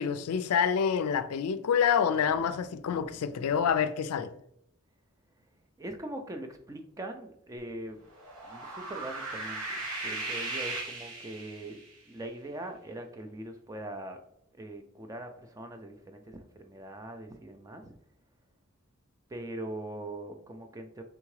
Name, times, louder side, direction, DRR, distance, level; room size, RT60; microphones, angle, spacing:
voice 1, 0.0-4.3, left 7 dB, 85° left, 0.4 m, -27 dB
voice 2, 2.8-3.2 5.8-8.0 8.4-11.8 12.1-14.2 14.5-18.0 19.3-21.0, right 1 dB, 15° right, 0.3 m, -42 dB
sound 1, 8.1-11.9, right 2 dB, 85° right, 1.0 m, -37 dB
3.6 x 3.5 x 3.1 m
head